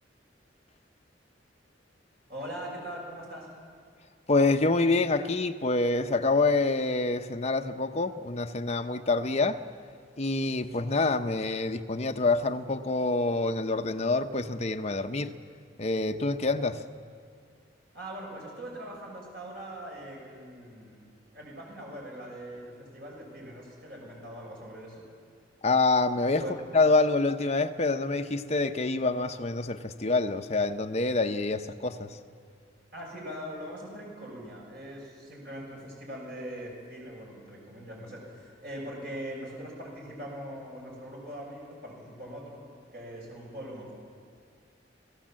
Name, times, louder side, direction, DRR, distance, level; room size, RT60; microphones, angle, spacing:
voice 1, 2.3-3.5 17.9-21.0 21.3-25.1 26.4-26.5 32.9-42.6 42.9-43.9, equal, 60° right, -2 dB, 6.4 m, -41 dB
voice 2, 4.3-9.6 10.2-15.3 15.8-16.8 25.6-26.4 26.7-32.2, left 3 dB, 35° left, 6 dB, 0.9 m, -26 dB
30.0 x 17.0 x 7.6 m, 2.2 s
head